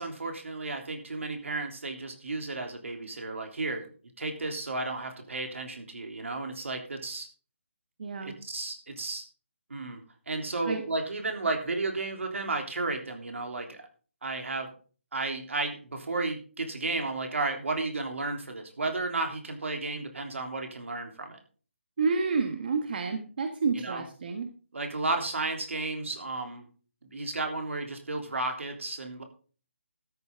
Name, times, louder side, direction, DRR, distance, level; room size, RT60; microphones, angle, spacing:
voice 1, 0.0-3.9 4.2-7.3 8.2-9.2 9.7-13.8 14.2-14.7 15.1-21.4 23.7-24.0 24.7-26.7 27.1-29.2, right 3 dB, 80° right, 4 dB, 3.4 m, -33 dB
voice 2, 8.0-8.4 10.6-10.8 22.0-24.5, right 4 dB, 50° right, 6 dB, 1.5 m, -29 dB
13.0 x 9.6 x 3.7 m, 0.38 s
hypercardioid pair, 165°, 7 cm